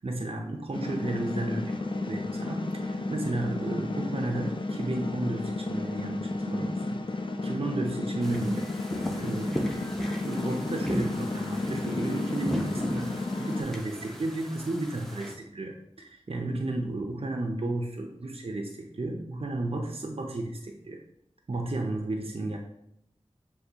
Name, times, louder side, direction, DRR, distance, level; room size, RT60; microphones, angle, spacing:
voice 1, 0.0-7.0 7.4-8.7 9.1-21.0 21.5-22.6, right 2 dB, 55° right, 2 dB, 0.5 m, -33 dB
sound 1, 0.7-13.6, left 2 dB, 45° left, 0.4 m, -33 dB
sound 2, 8.2-15.3, equal, 5° left, 0.6 m, -36 dB
6.5 x 2.3 x 2.8 m, 0.77 s
wide cardioid pair, 50°, 12 cm